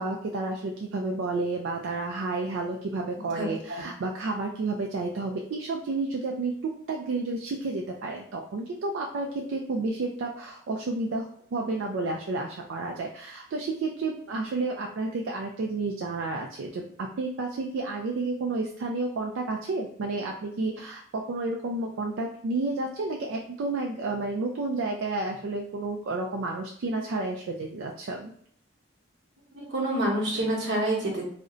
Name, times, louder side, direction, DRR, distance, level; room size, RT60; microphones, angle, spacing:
voice 1, 0.0-11.3 11.5-28.3, right 3 dB, 85° right, 1 dB, 0.3 m, -31 dB
voice 2, 3.4-3.8 29.5-31.2, right 1 dB, 70° right, -2 dB, 1.0 m, -28 dB
2.5 x 2.1 x 3.7 m, 0.62 s
head